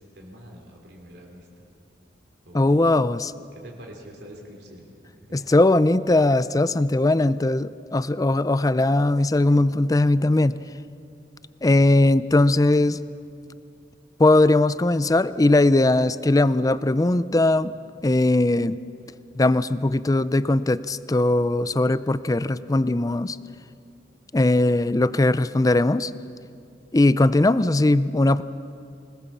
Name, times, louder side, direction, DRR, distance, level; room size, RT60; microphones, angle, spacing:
voice 1, 0.0-1.7 2.4-3.0 3.5-5.5, equal, 65° right, 0 dB, 3.3 m, -45 dB
voice 2, 2.5-3.3 5.3-10.6 11.6-13.0 14.2-17.7 18.0-18.8 19.4-23.4 24.3-26.1 26.9-28.4, left 2 dB, 20° left, 15 dB, 0.5 m, -19 dB
26.5 x 19.5 x 7.3 m, 2.4 s
head